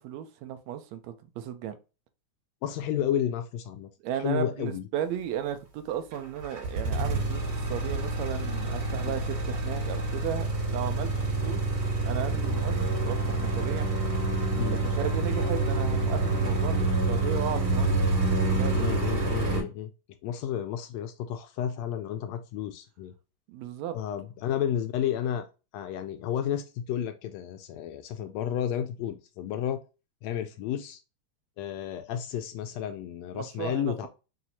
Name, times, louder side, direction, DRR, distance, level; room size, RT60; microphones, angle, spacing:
voice 1, 0.0-1.8 4.0-11.1 11.4-11.6 12.0-12.8 13.0-13.9 14.8-17.9 18.3-18.9 23.5-24.0 33.3-34.1, right 9 dB, 75° right, 1.8 m, -35 dB
voice 2, 2.6-3.9 4.2-4.8 14.6-14.8 18.8-19.9 20.2-23.1 23.9-25.5 25.7-29.8 30.2-31.0 31.6-34.1, left 10 dB, 80° left, 1.6 m, -31 dB
sound 1, 6.1-19.6, right 2 dB, 50° right, 2.9 m, -27 dB
5.8 x 2.8 x 2.7 m
omnidirectional pair, 3.4 m